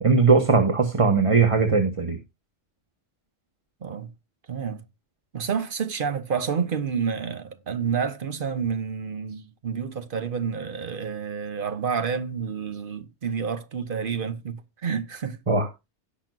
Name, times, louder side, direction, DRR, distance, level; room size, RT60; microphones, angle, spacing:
voice 1, 0.0-2.2 15.5-15.7, right 4 dB, 30° right, 1.2 m, -19 dB
voice 2, 3.8-4.1 4.5-4.8 5.3-15.4, right 6 dB, 50° right, 1.1 m, -29 dB
17.0 x 6.0 x 2.5 m
omnidirectional pair, 1.2 m